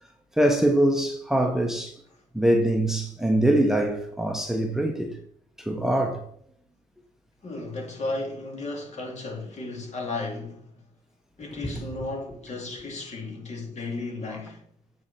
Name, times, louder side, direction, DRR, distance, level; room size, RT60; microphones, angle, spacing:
voice 1, 0.4-1.9 2.3-5.1 5.6-6.2 11.8-11.9, right 1 dB, 5° right, 1.1 m, -23 dB
voice 2, 7.4-10.7 11.4-14.6, left 2 dB, 45° left, 3.0 m, -34 dB
8.5 x 4.3 x 4.3 m
supercardioid pair, 70°, 16 cm